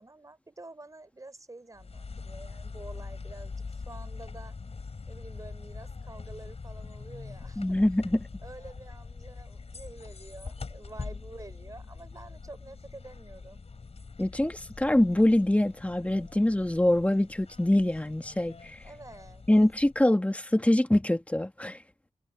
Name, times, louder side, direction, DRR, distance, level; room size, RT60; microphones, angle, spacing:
voice 1, 0.0-4.6 5.1-7.6 8.4-13.6 18.8-19.4, right 2 dB, 25° right, 5.2 m, -48 dB
sound 1, 1.7-20.2, left 4 dB, 55° left, 5.0 m, -43 dB
voice 2, 7.6-8.2 14.2-18.8 19.5-21.8, left 1 dB, 10° left, 1.4 m, -24 dB
wide cardioid pair, 115°, 13 cm